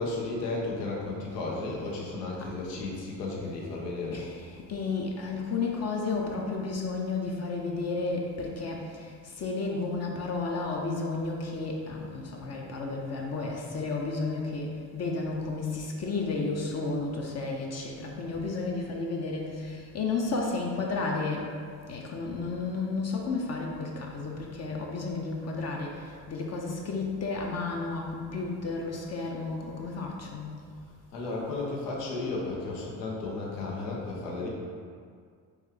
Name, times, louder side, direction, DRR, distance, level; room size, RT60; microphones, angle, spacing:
voice 1, 0.0-4.2 31.1-34.5, left 3 dB, 85° left, -2 dB, 0.9 m, -33 dB
voice 2, 4.1-21.5 21.9-30.5, left 3 dB, 35° left, -1 dB, 0.6 m, -32 dB
3.2 x 3.1 x 3.6 m, 2.1 s
hypercardioid pair, 60°, 47 cm